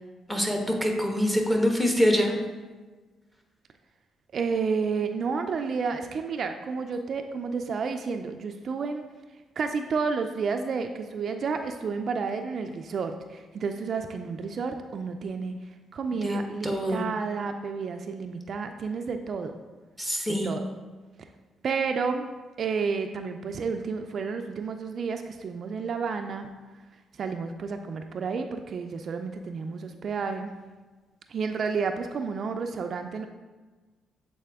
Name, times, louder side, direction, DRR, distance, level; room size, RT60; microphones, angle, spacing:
voice 1, 0.3-2.4 16.2-17.0 20.0-20.5, equal, 10° left, 1 dB, 1.1 m, -25 dB
voice 2, 4.3-9.0 9.6-15.5 15.9-19.5 20.3-20.7 21.6-22.3 22.6-26.5 27.2-30.5 31.3-33.3, right 5 dB, 55° right, 6 dB, 0.4 m, -31 dB
7.5 x 4.1 x 3.5 m, 1.3 s
cardioid pair, 90°, 0 cm